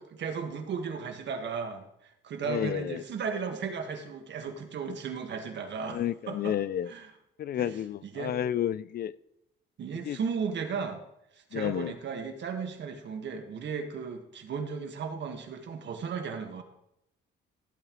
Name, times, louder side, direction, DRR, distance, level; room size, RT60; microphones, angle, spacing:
voice 1, 0.0-1.8 2.2-6.0 6.3-6.5 6.9-7.1 7.5-7.7 8.0-8.3 9.8-11.0 11.5-16.6, right 6 dB, 65° right, 5 dB, 1.6 m, -35 dB
voice 2, 2.4-3.0 5.8-6.9 7.4-9.1 10.0-10.2 11.5-11.9, left 10 dB, 50° left, 18 dB, 0.4 m, -31 dB
14.0 x 8.8 x 3.1 m, 0.80 s
cardioid pair, 90°, 20 cm